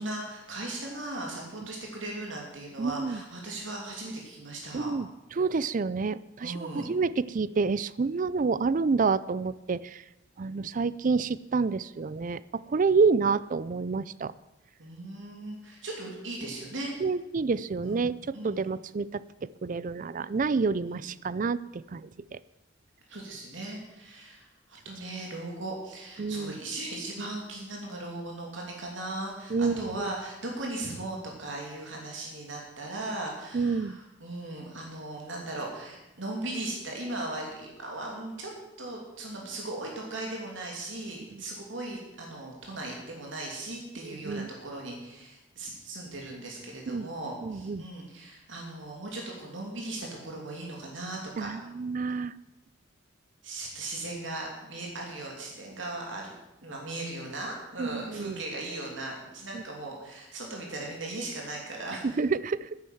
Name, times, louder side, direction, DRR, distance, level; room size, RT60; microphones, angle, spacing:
voice 1, 0.0-4.9 6.4-6.9 14.8-16.9 17.8-18.0 18.3-18.7 20.8-21.1 23.1-38.5 38.8-51.5 53.4-56.4 56.6-62.2, right 2 dB, 75° right, -1 dB, 2.9 m, -38 dB
voice 2, 2.8-3.2 4.7-5.1 5.4-10.0 10.4-14.3 17.0-22.4 26.2-26.6 29.5-30.1 33.5-34.0 41.3-41.4 44.0-44.5 46.9-47.1 47.4-47.8 51.4-52.3 57.8-58.4 59.5-59.6 62.0-62.8, right 4 dB, 40° right, 18 dB, 0.4 m, -28 dB
10.5 x 10.0 x 7.8 m, 0.96 s
head